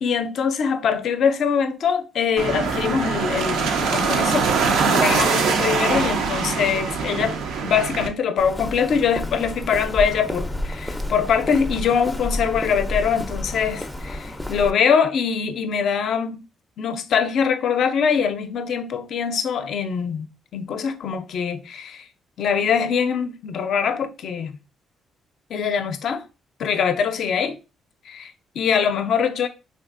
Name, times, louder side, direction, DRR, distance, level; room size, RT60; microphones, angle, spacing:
voice 1, 0.0-4.5 4.9-16.4 16.8-20.3 20.5-22.1 22.4-24.5 25.5-26.2 26.6-27.5 28.1-29.5, left 7 dB, 65° left, 0.4 m, -23 dB
sound 1, 2.4-8.1, right 5 dB, 85° right, 0.4 m, -22 dB
Walk footsteps, 8.4-14.7, left 1 dB, 5° left, 0.4 m, -30 dB
3.5 x 2.6 x 2.4 m
cardioid pair, 90°, 0 cm